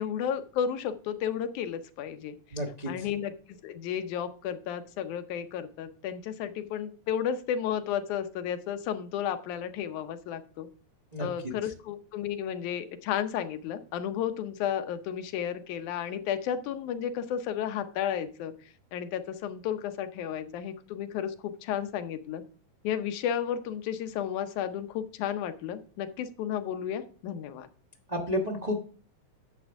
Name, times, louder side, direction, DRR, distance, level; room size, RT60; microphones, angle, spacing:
voice 1, 0.0-2.4 2.9-10.7 11.2-18.5 18.9-22.4 22.8-27.7, left 9 dB, 90° left, 9 dB, 2.2 m, -33 dB
voice 2, 2.5-2.9 11.1-11.3 28.1-28.9, left 1 dB, 90° right, 0 dB, 0.3 m, -30 dB
10.5 x 7.3 x 3.4 m, 0.40 s
omnidirectional pair, 3.4 m